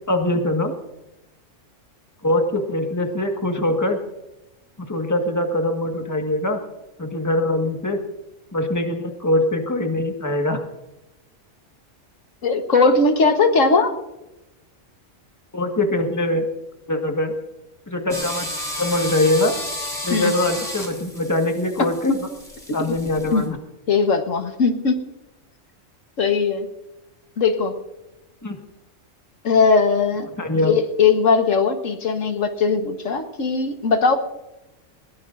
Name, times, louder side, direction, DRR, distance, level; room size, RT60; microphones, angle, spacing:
voice 1, 0.1-0.7 2.2-4.0 4.8-6.6 7.0-8.0 8.5-10.6 15.5-16.5 16.9-17.3 17.9-18.5 18.8-19.5 20.0-22.2 22.7-23.6 28.4-28.6 30.4-30.7, left 1 dB, 15° left, 4 dB, 1.5 m, -22 dB
voice 2, 12.4-13.9 20.1-20.3 23.3-23.5 23.9-24.9 26.2-26.7 27.4-27.7 29.4-30.3 30.6-34.2, left 4 dB, 75° left, 6 dB, 1.6 m, -19 dB
sound 1, 18.1-23.5, left 1 dB, 30° left, 3.8 m, -32 dB
21.5 x 17.5 x 2.6 m, 0.96 s
omnidirectional pair, 1.3 m